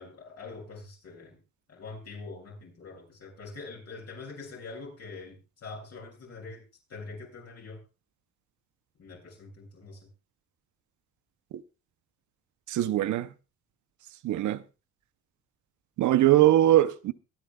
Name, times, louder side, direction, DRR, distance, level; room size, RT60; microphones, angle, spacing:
voice 1, 0.0-1.4 1.7-6.6 6.9-7.8 9.0-10.0, left 3 dB, 55° left, 7.9 m, -44 dB
voice 2, 12.7-13.3 14.2-14.6 16.0-17.1, right 14 dB, 75° right, 0.8 m, -21 dB
24.0 x 10.5 x 2.3 m
cardioid pair, 90°, 30 cm